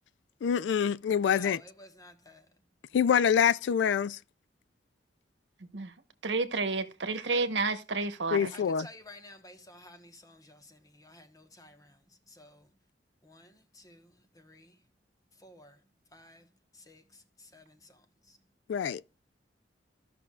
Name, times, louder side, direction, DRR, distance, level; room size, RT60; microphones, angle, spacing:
voice 1, 0.4-1.6 2.9-4.2 8.3-8.9 18.7-19.0, left 8 dB, 80° left, 0.3 m, -26 dB
voice 2, 1.2-2.4 8.5-12.0 12.3-12.7 13.2-14.7 15.4-15.8 16.1-16.5 16.7-18.4, left 1 dB, 20° left, 1.1 m, -53 dB
voice 3, 6.2-8.5, right 3 dB, 80° right, 1.0 m, -30 dB
15.0 x 5.9 x 2.3 m
head